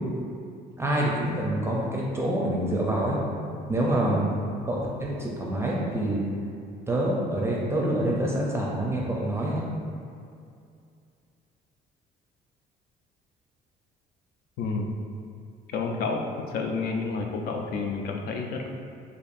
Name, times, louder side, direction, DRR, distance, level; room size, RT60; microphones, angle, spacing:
voice 1, 0.8-3.2 3.7-4.3 4.6-6.2 6.9-9.7, right 1 dB, 15° right, -4 dB, 0.5 m, -26 dB
voice 2, 14.6-14.9 15.7-18.7, left 4 dB, 65° left, 2 dB, 0.5 m, -30 dB
4.4 x 2.5 x 2.5 m, 2.4 s
cardioid pair, 110°, 17 cm